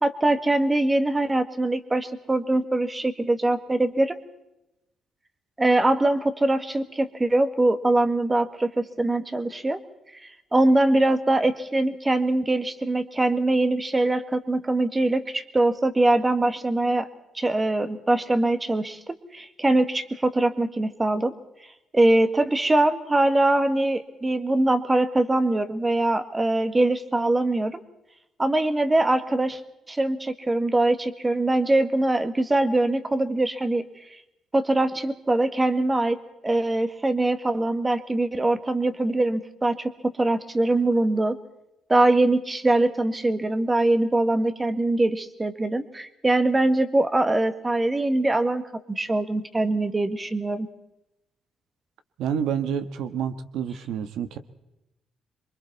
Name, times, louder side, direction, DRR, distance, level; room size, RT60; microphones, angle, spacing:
voice 1, 0.0-4.2 5.6-9.8 10.2-17.1 17.3-21.3 21.9-27.8 28.4-29.6 29.9-33.9 34.5-36.2 36.4-41.4 41.9-48.6 48.9-50.7, right 2 dB, 15° right, 10 dB, 1.7 m, -23 dB
voice 2, 52.2-54.4, right 8 dB, 85° right, 10 dB, 1.4 m, -28 dB
27.0 x 24.0 x 4.2 m, 0.91 s
cardioid pair, 130°, 0 cm